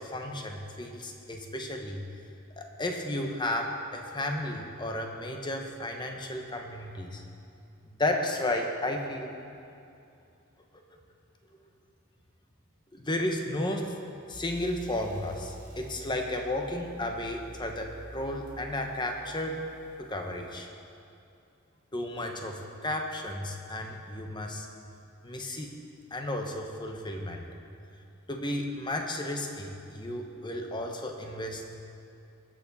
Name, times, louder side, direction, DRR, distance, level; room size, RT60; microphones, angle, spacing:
voice 1, 0.0-2.0 2.6-7.2 7.9-9.3 12.9-14.0 14.3-19.7 20.0-20.7 21.9-24.7 25.2-25.8 26.1-27.5 28.3-31.7, left 1 dB, 20° left, 3 dB, 1.0 m, -33 dB
sound 1, 14.3-20.5, right 1 dB, 40° right, 2.2 m, -48 dB
21.0 x 7.1 x 4.2 m, 2.6 s
head